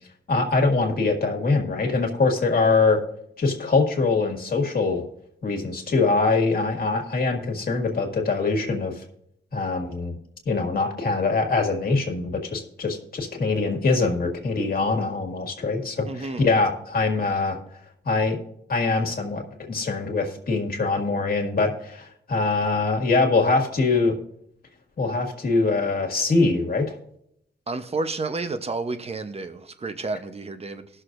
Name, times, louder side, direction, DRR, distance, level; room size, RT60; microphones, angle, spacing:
voice 1, 0.3-3.0 3.4-5.0 5.4-8.9 9.5-10.2 10.5-17.6 18.1-18.4 18.7-24.2 25.0-27.0, left 3 dB, 55° left, 1.9 m, -23 dB
voice 2, 16.1-16.5 27.7-30.9, right 3 dB, 35° right, 0.9 m, -30 dB
18.5 x 6.5 x 2.6 m
cardioid pair, 80°, 19 cm